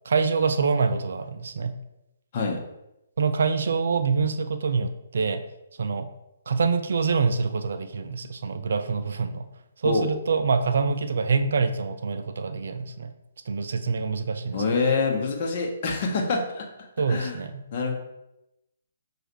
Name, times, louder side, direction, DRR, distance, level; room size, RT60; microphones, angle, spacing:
voice 1, 0.1-1.7 3.2-5.4 5.8-6.1 6.5-9.4 9.8-13.1 13.5-14.6 17.0-17.5, right 5 dB, 65° right, 9 dB, 0.4 m, -25 dB
voice 2, 14.5-16.7 17.1-17.4 17.7-17.9, left 4 dB, 45° left, 1 dB, 0.9 m, -25 dB
6.3 x 2.4 x 3.0 m, 0.90 s
figure-of-eight pair, 135°, 0 cm